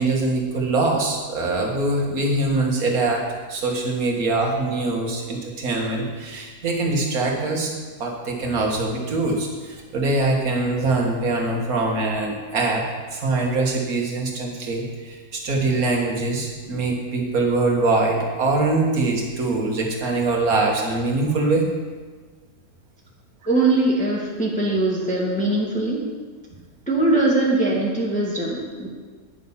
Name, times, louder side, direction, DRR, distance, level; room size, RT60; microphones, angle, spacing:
voice 1, 0.0-7.7 8.0-12.9 13.1-21.7, right 2 dB, 70° right, 0 dB, 2.0 m, -23 dB
voice 2, 23.5-26.0 26.9-28.9, right 2 dB, 5° left, -4 dB, 1.5 m, -21 dB
10.5 x 5.9 x 5.6 m, 1.4 s
omnidirectional pair, 1.6 m